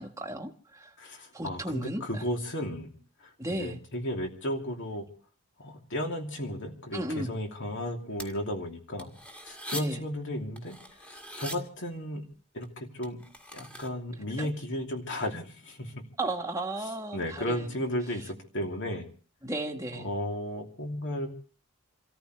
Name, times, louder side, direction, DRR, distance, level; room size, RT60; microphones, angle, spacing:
voice 1, 0.0-0.9 1.3-2.2 3.4-3.8 6.9-7.4 9.7-10.0 14.4-14.5 16.2-17.8 19.4-20.1, right 1 dB, 15° right, 1.4 m, -35 dB
voice 2, 1.0-2.9 3.5-5.1 5.6-9.1 9.4-10.8 11.0-12.2 12.5-13.2 13.5-16.0 17.1-19.1 20.0-21.3, left 1 dB, 60° left, 2.9 m, -34 dB
sound 1, 8.2-8.3 9.0-9.8 10.6-11.6 12.6-12.7 13.0-13.9, right 1 dB, 5° left, 1.8 m, -41 dB
28.0 x 14.0 x 3.2 m
head